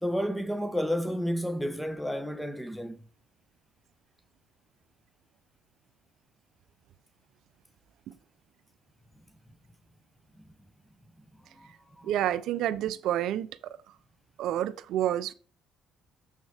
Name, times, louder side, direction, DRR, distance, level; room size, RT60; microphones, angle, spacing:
voice 1, 0.0-3.1 11.6-12.1, equal, ahead, 0.8 m, -31 dB
voice 2, 12.0-13.8 14.4-15.3, right 12 dB, 75° right, 0.4 m, -29 dB
7.2 x 6.3 x 3.3 m
cardioid pair, 85°, 0 cm